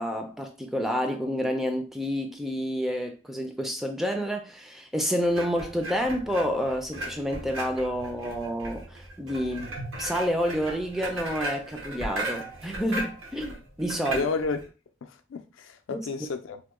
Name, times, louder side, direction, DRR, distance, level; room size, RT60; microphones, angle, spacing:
voice 1, 0.0-9.7 10.0-14.3 15.9-16.1, equal, ahead, 0.3 m, -29 dB
sound 1, 5.3-14.7, right 1 dB, 90° right, 1.1 m, -37 dB
voice 2, 14.0-14.6 15.0-16.6, left 4 dB, 75° left, 0.4 m, -31 dB
2.9 x 2.1 x 3.5 m
head